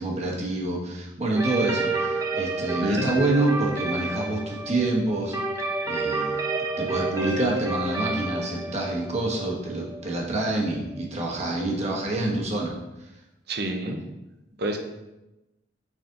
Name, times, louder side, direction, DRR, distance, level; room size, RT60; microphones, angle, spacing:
voice 1, 0.0-5.4 5.8-6.4 6.8-12.7 13.0-13.1, right 2 dB, 35° right, -2 dB, 1.2 m, -27 dB
sound 1, 1.3-11.0, right 2 dB, 20° right, 0.7 m, -30 dB
voice 2, 13.5-14.0 14.6-14.8, right 1 dB, 60° right, 4 dB, 0.8 m, -27 dB
6.2 x 4.2 x 3.8 m, 0.99 s
head